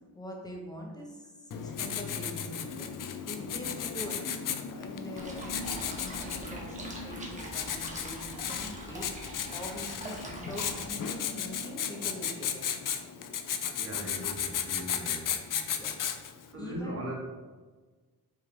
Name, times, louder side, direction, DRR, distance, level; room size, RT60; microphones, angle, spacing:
voice 1, 0.1-4.2 4.7-9.1 9.5-12.6 15.5-16.0 16.5-17.0, left 1 dB, 10° left, -1 dB, 1.2 m, -44 dB
Writing, 1.5-16.5, left 8 dB, 50° left, 0.6 m, -35 dB
sound 1, 5.2-10.9, right 2 dB, 20° right, 1.3 m, -43 dB
voice 2, 13.8-15.2 16.5-17.1, right 1 dB, 35° right, -4 dB, 2.2 m, -38 dB
8.0 x 5.8 x 3.5 m, 1.4 s
wide cardioid pair, 175°, 40 cm